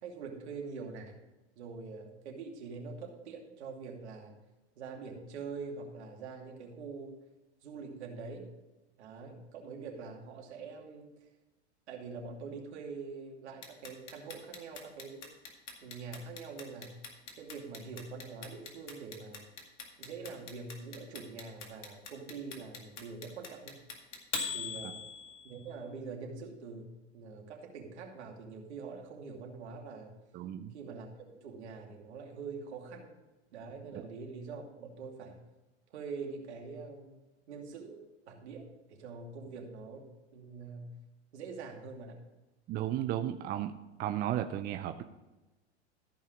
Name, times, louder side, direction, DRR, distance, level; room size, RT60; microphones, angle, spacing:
voice 1, 0.0-1.2 1.6-4.4 4.8-7.2 7.6-8.5 9.0-11.1 11.9-15.3 15.8-17.0 17.4-19.4 20.0-23.8 24.5-25.0 25.4-30.2 30.7-33.1 33.5-35.4 35.9-37.2 37.5-41.0 41.3-42.2, right 4 dB, 70° right, 1 dB, 2.6 m, -44 dB
Clock, 13.6-25.6, left 5 dB, 85° left, 2.2 m, -41 dB
voice 2, 30.3-30.7 33.9-34.0 42.7-43.7 44.0-45.0, right 12 dB, 25° right, 7 dB, 0.5 m, -34 dB
14.0 x 5.6 x 5.0 m, 1.1 s
hypercardioid pair, 110°, 34 cm